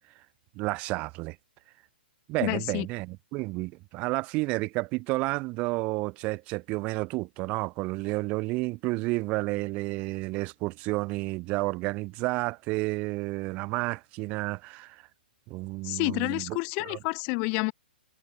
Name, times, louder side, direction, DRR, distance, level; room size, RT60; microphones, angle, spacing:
voice 1, 0.5-1.3 2.3-15.0 15.5-16.6 16.8-17.0, right 23 dB, 25° right, 3.2 m, -31 dB
voice 2, 2.4-2.9 15.8-17.7, left 37 dB, 25° left, 3.1 m, -29 dB
hypercardioid pair, 165°, 6 cm